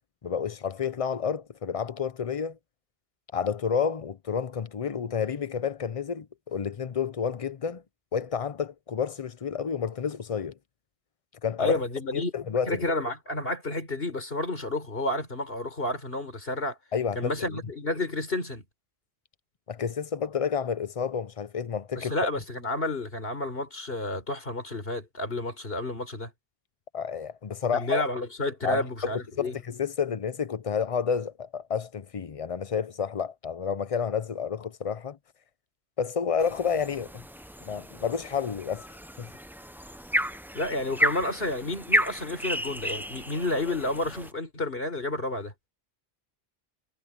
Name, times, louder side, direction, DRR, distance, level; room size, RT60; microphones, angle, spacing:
voice 1, 0.2-2.6 3.3-7.8 8.1-10.6 11.4-11.8 12.1-12.8 16.9-17.6 19.7-22.1 26.9-28.0 28.6-35.2 36.0-37.2 37.6-38.8 39.2-39.3, left 6 dB, 40° left, 0.7 m, -30 dB
voice 2, 11.6-12.3 12.7-16.8 17.2-18.6 21.9-26.3 27.7-29.6 40.5-45.5, left 2 dB, 65° left, 4.4 m, -30 dB
sound 1, 36.4-44.3, equal, ahead, 0.5 m, -32 dB
omnidirectional pair, 1.1 m